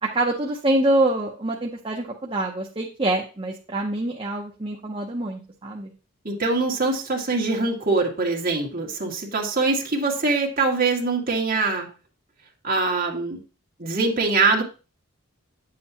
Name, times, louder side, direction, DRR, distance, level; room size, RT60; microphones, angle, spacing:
voice 1, 0.0-5.9, right 1 dB, 25° right, 0 dB, 0.7 m, -25 dB
voice 2, 6.2-11.9 12.6-13.4 13.8-14.6, right 3 dB, 40° right, -1 dB, 1.9 m, -23 dB
9.8 x 7.6 x 2.9 m, 0.34 s
head